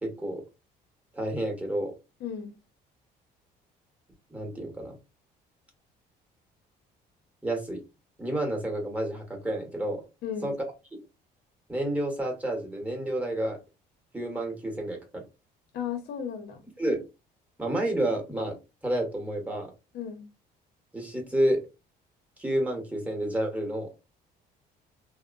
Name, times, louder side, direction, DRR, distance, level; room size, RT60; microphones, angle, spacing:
voice 1, 0.0-0.4 1.1-1.9 4.3-5.0 7.4-7.8 8.2-10.0 10.4-10.5 11.7-13.6 14.1-15.2 16.8-17.0 17.6-18.6 18.8-19.7 20.9-21.6 22.4-23.9, right 1 dB, 10° right, 1.0 m, -30 dB
voice 2, 2.2-2.5 10.2-10.5 15.7-16.6 19.9-20.3, left 8 dB, 75° left, 0.8 m, -35 dB
2.7 x 2.1 x 2.5 m
cardioid pair, 110°, 17 cm